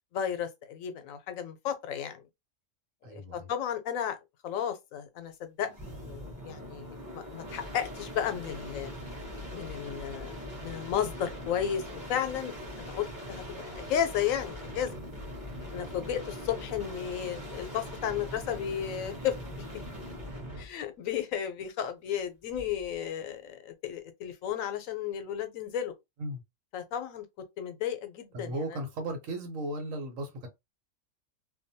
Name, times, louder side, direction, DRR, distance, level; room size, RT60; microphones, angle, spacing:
voice 1, 0.1-2.2 3.1-4.2 4.4-5.7 6.0-8.9 9.5-10.3 10.6-11.8 12.1-12.5 12.9-14.9 15.7-19.4 20.6-25.9 26.7-27.2 27.6-28.6, left 9 dB, 85° left, 1.0 m, -33 dB
voice 2, 3.0-3.5 26.2-26.4 28.3-30.5, right 1 dB, 80° right, 1.3 m, -36 dB
sound 1, 5.7-20.7 22.5-22.9, equal, 15° right, 1.0 m, -41 dB
2.7 x 2.2 x 2.6 m
omnidirectional pair, 1.4 m